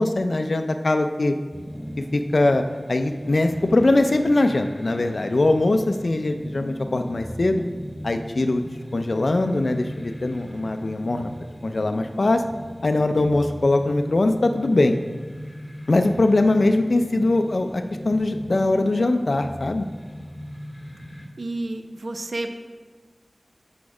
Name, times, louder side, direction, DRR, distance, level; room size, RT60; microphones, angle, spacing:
voice 1, 0.0-1.4 2.0-2.6 2.9-7.6 8.0-8.6 8.9-11.3 11.6-12.4 12.8-15.0 15.9-19.9, left 2 dB, 70° left, 6 dB, 0.4 m, -21 dB
sound 1, 1.5-21.3, equal, 15° left, 1.8 m, -38 dB
voice 2, 21.4-22.5, right 2 dB, 80° right, 7 dB, 0.5 m, -30 dB
6.2 x 5.8 x 4.8 m, 1.4 s
wide cardioid pair, 65°, 0 cm